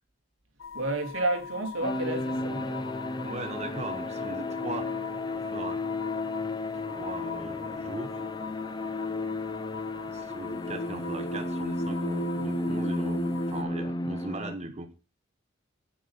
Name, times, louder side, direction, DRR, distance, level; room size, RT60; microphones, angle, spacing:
sound 1, 0.6-13.6, left 2 dB, 90° left, 1.2 m, -40 dB
voice 1, 0.7-2.8, right 2 dB, 85° right, 2.8 m, -31 dB
sound 2, 1.8-14.5, left 2 dB, 20° left, 0.6 m, -33 dB
voice 2, 3.2-4.9 5.3-5.8 6.7-8.2 10.0-14.9, right 2 dB, 35° right, 1.0 m, -39 dB
9.2 x 8.4 x 5.6 m
head